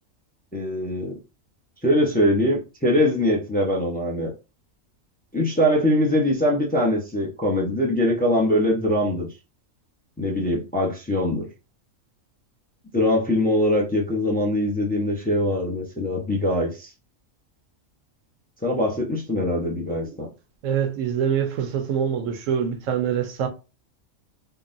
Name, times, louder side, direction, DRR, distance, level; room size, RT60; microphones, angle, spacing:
voice 1, 0.5-1.2 1.8-4.3 5.3-9.3 10.2-11.5 12.9-16.9 18.6-20.3, left 1 dB, 15° left, 0.4 m, -22 dB
voice 2, 20.6-23.5, right 8 dB, 80° right, 1.0 m, -25 dB
3.7 x 2.1 x 2.5 m
omnidirectional pair, 1.4 m